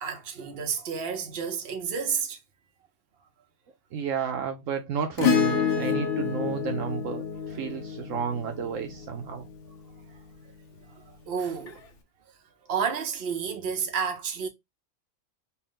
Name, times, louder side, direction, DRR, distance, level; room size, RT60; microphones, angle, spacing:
voice 1, 0.0-2.4 11.3-11.8 12.7-14.5, right 6 dB, 50° right, 1.0 m, -30 dB
voice 2, 3.9-9.5, right 6 dB, 70° right, 1.0 m, -32 dB
Acoustic guitar / Strum, 5.2-9.8 11.7-11.8, left 6 dB, 65° left, 1.1 m, -28 dB
4.2 x 2.1 x 3.7 m
omnidirectional pair, 1.4 m